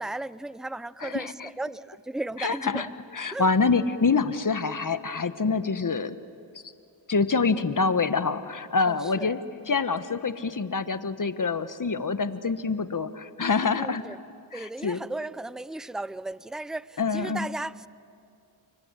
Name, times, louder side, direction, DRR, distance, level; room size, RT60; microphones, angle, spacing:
voice 1, 0.0-2.9 3.3-3.5 8.9-9.3 13.8-14.2 14.5-17.9, right 2 dB, ahead, 17 dB, 0.6 m, -35 dB
voice 2, 1.0-1.5 2.4-2.9 3.1-6.1 7.1-9.4 9.7-14.0 14.5-15.0 17.0-17.5, left 4 dB, 40° left, 11 dB, 1.5 m, -26 dB
29.5 x 24.0 x 8.3 m, 2.5 s
cardioid pair, 45°, 46 cm